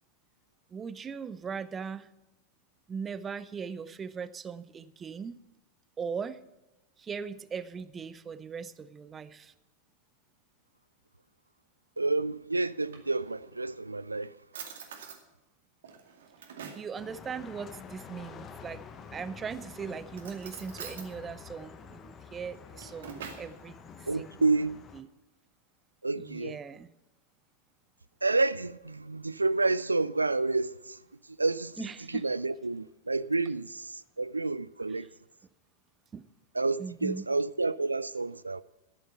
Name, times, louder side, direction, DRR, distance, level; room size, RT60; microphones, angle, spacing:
voice 1, 0.7-2.1 2.9-5.4 6.0-6.4 7.0-9.5 16.7-18.8 19.1-24.6 24.9-25.1 26.2-26.9 31.8-32.3 34.9-35.1 36.1-36.2 36.8-37.3, right 6 dB, 20° right, 0.7 m, -39 dB
voice 2, 12.0-14.3 24.1-24.8 26.0-26.6 28.2-31.0 31.4-31.7 32.2-35.1 36.6-38.6, right 3 dB, 80° right, 0.3 m, -29 dB
Drawer open or close, 12.6-13.6 14.1-14.2 14.5-15.2 15.8-16.9 18.8-19.3 20.1-21.1 22.5-23.5, right 6 dB, 60° right, 2.2 m, -45 dB
sound 1, 17.0-25.0, left 6 dB, 25° left, 1.2 m, -48 dB
13.5 x 10.0 x 5.8 m
figure-of-eight pair, 90°, 0 cm